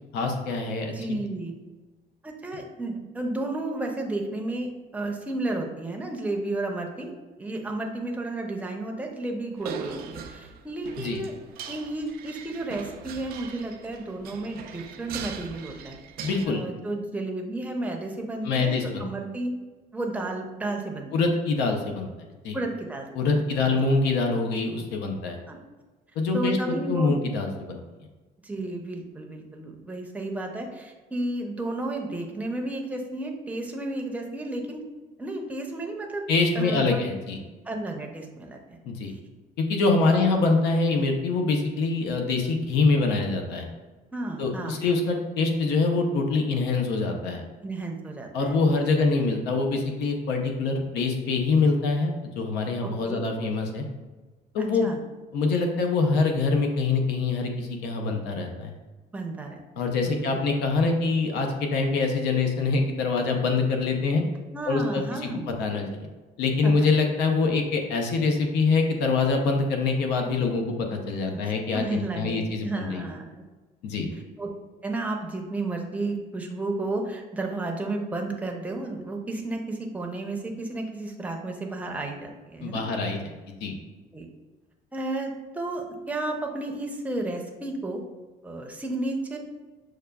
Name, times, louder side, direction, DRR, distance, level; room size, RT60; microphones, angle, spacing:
voice 1, 0.1-0.9 11.0-11.2 16.2-16.6 18.4-19.0 21.1-22.1 22.4-22.6 23.2-25.4 26.2-27.8 36.3-37.4 38.8-39.1 39.6-43.7 44.4-47.4 48.3-53.8 54.5-54.9 55.3-58.7 59.8-64.2 64.7-65.3 65.6-66.0 66.4-73.1 73.8-74.1 82.6-83.2 83.6-83.7, left 3 dB, 85° left, 3 dB, 0.6 m, -24 dB
voice 2, 0.9-1.5 2.2-7.1 7.4-11.3 11.7-16.0 16.4-19.5 19.9-21.1 22.5-23.1 23.5-23.8 25.5-25.6 26.3-27.2 28.4-34.8 35.2-36.3 36.5-37.1 37.6-38.8 40.1-40.5 44.1-45.0 47.6-49.1 52.8-53.2 54.6-55.0 59.1-60.4 64.5-65.4 66.6-66.9 71.3-71.4 71.7-73.4 73.8-74.0 74.4-74.5 74.8-82.8 84.1-84.3 84.9-88.0 88.4-89.4, right 2 dB, 10° right, 1 dB, 0.6 m, -32 dB
sound 1, 9.6-16.5, right 7 dB, 60° right, 0.4 m, -40 dB
6.3 x 2.3 x 2.3 m, 1.2 s
cardioid pair, 110°, 17 cm